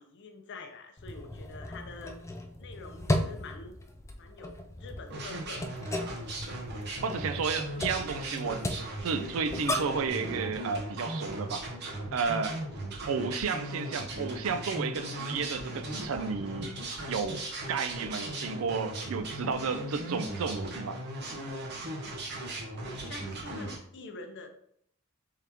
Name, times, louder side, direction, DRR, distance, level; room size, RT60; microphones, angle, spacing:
voice 1, 0.0-2.2 2.6-3.8 4.2-5.8 22.8-24.5, left 3 dB, 60° left, 0.6 m, -46 dB
sound 1, 1.0-10.1, left 1 dB, 15° left, 0.3 m, -36 dB
sound 2, 5.1-23.8, right 1 dB, 55° right, 0.9 m, -38 dB
voice 2, 7.0-8.6 9.0-11.7 12.1-12.6 13.1-16.8 17.1-17.4 17.7-21.0, right 5 dB, 70° right, 0.4 m, -32 dB
3.7 x 2.9 x 3.4 m
head